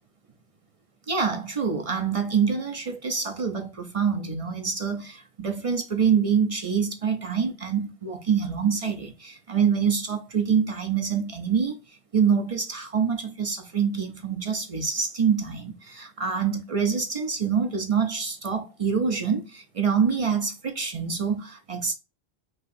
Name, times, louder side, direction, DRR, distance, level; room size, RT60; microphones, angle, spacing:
voice 1, 1.1-11.8 12.1-21.9, right 6 dB, 40° right, 0.5 m, -26 dB
5.6 x 2.8 x 2.6 m
omnidirectional pair, 1.1 m